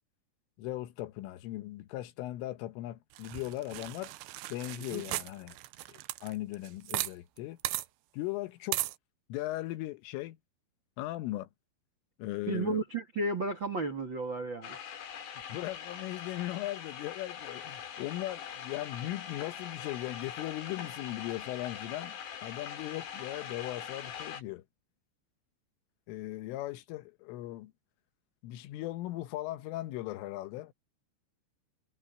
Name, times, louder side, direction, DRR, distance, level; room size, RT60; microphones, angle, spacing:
voice 1, 0.6-4.1 4.5-5.6 5.9-7.6 8.1-8.8 9.3-10.4 11.0-11.5 12.2-12.8 15.5-24.6 26.1-27.7 28.4-30.7, left 16 dB, 80° left, 3.6 m, -38 dB
sound 1, 3.2-7.1 7.4-7.5 7.7-7.9 8.7-9.0, right 17 dB, 80° right, 2.6 m, -36 dB
voice 2, 12.5-14.8, right 2 dB, 60° right, 1.2 m, -33 dB
sound 2, 14.6-24.4, left 8 dB, 55° left, 4.7 m, -42 dB
omnidirectional pair, 5.9 m